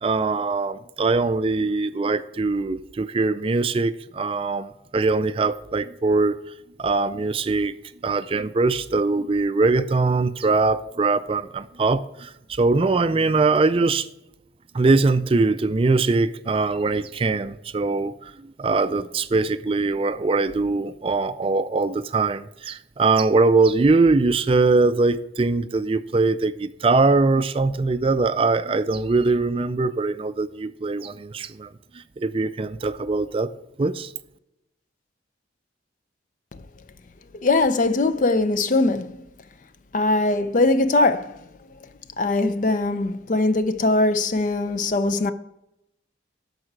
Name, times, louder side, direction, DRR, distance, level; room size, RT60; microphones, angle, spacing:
voice 1, 0.0-6.4 6.8-7.7 8.0-14.1 14.7-31.7 31.9-33.5 33.8-34.1, right 3 dB, 30° right, 0.4 m, -22 dB
voice 2, 37.4-39.1 39.9-41.4 42.2-45.3, left 2 dB, 45° left, 0.5 m, -21 dB
12.5 x 4.9 x 4.6 m
head